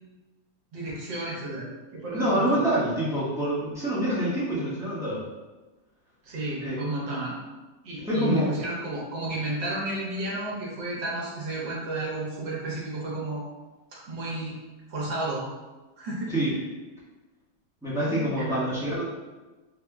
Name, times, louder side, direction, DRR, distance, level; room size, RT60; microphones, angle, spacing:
voice 1, 0.7-1.7 1.9-2.6 6.2-7.3 7.8-13.4 13.9-14.6 14.9-15.4 16.0-16.5 18.3-18.6, right 2 dB, 70° right, -5 dB, 1.6 m, -32 dB
voice 2, 2.1-5.2 6.6-6.8 8.0-8.5 16.3-16.5 17.8-19.0, right 1 dB, 5° right, -9 dB, 0.4 m, -26 dB
4.2 x 2.0 x 3.4 m, 1.2 s
omnidirectional pair, 2.1 m